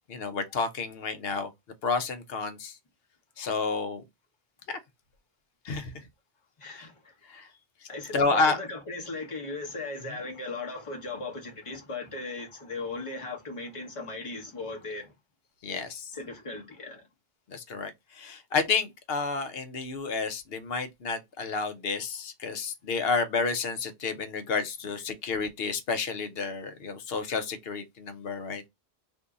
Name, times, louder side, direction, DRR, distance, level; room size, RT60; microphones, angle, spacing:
voice 1, 0.1-1.5 1.8-2.8 3.4-4.0 4.7-4.8 5.6-5.9 6.7-6.9 7.3-7.5 8.1-8.6 15.6-16.1 17.5-28.7, left 4 dB, 70° left, 0.9 m, -30 dB
voice 2, 6.6-7.2 7.9-15.1 16.1-17.0, left 3 dB, 30° left, 1.1 m, -37 dB
2.6 x 2.6 x 3.6 m
omnidirectional pair, 1.1 m